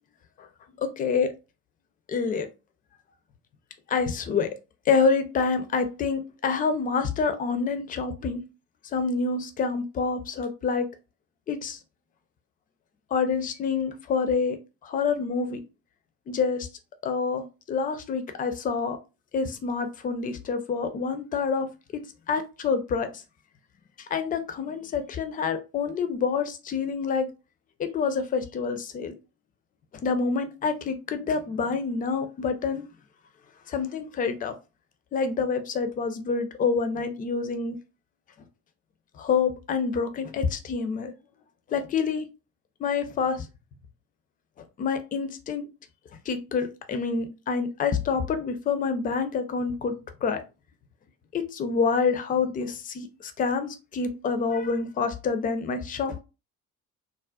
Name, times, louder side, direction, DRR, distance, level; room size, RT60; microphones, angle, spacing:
voice 1, 0.8-1.3 2.1-2.5 3.9-4.5 4.9-8.4 8.9-10.9 11.5-11.8 13.1-14.6 14.8-15.6 16.3-16.7 17.0-19.0 19.3-21.7 21.9-22.0 22.3-23.2 24.1-27.3 27.8-29.1 29.9-32.8 33.7-34.5 35.1-37.8 39.2-41.1 41.7-42.3 42.8-43.5 44.8-45.7 46.3-50.4 51.3-56.2, left 5 dB, 20° left, 0.4 m, -27 dB
3.5 x 2.1 x 2.3 m
figure-of-eight pair, 55°, 45 cm